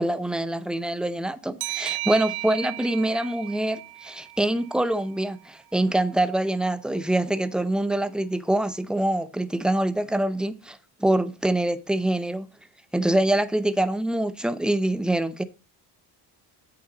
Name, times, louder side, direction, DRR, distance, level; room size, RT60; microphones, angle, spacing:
voice 1, 0.0-12.5 12.9-15.4, right 1 dB, ahead, 0.6 m, -25 dB
sound 1, 1.6-4.9, right 20 dB, 65° right, 0.5 m, -35 dB
8.3 x 7.0 x 3.9 m
cardioid pair, 120°, 41 cm